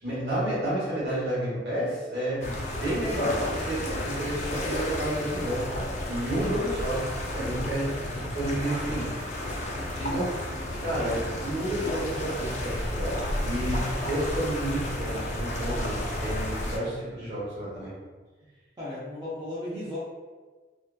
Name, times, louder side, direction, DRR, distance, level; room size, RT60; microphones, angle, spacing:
voice 1, 0.0-7.1 7.3-9.1 9.9-10.3 10.8-17.9, right 1 dB, 60° right, -8 dB, 1.1 m, -31 dB
sound 1, 2.4-16.8, left 1 dB, 40° left, 0.3 m, -32 dB
voice 2, 7.4-7.7 18.8-20.0, left 1 dB, 20° right, -9 dB, 0.5 m, -36 dB
2.6 x 2.2 x 2.3 m, 1.4 s
head